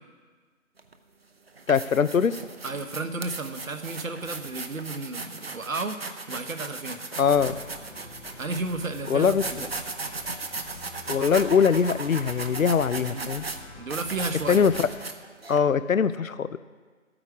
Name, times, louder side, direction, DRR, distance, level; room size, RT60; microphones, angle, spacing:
sound 1, 0.8-0.9 1.5-15.6, right 3 dB, 45° right, 0.8 m, -37 dB
voice 1, 1.7-2.4 7.2-7.5 9.1-9.7 11.1-13.4 14.5-14.9 15.5-16.6, left 6 dB, 75° left, 15 dB, 0.7 m, -22 dB
voice 2, 2.6-6.0 6.3-7.0 8.4-9.4 13.1-13.3 13.7-14.7, right 3 dB, 75° right, 7 dB, 1.2 m, -32 dB
sound 2, 7.2-15.1, left 2 dB, 55° left, 2.9 m, -46 dB
13.0 x 8.9 x 4.8 m, 1.4 s
figure-of-eight pair, 170°, 41 cm